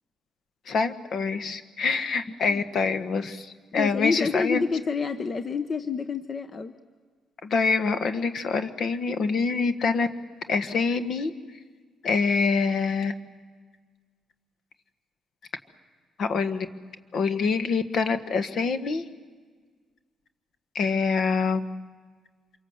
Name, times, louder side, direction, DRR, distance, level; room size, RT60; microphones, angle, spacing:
voice 1, 0.7-4.6 7.4-10.1 10.5-11.3 12.0-13.1 16.2-16.7 17.1-19.0 20.7-21.6, left 4 dB, 60° left, 10 dB, 1.5 m, -25 dB
voice 2, 3.7-6.7, left 5 dB, 40° left, 10 dB, 1.0 m, -28 dB
27.0 x 23.5 x 8.1 m, 1.6 s
cardioid pair, 90°, 0 cm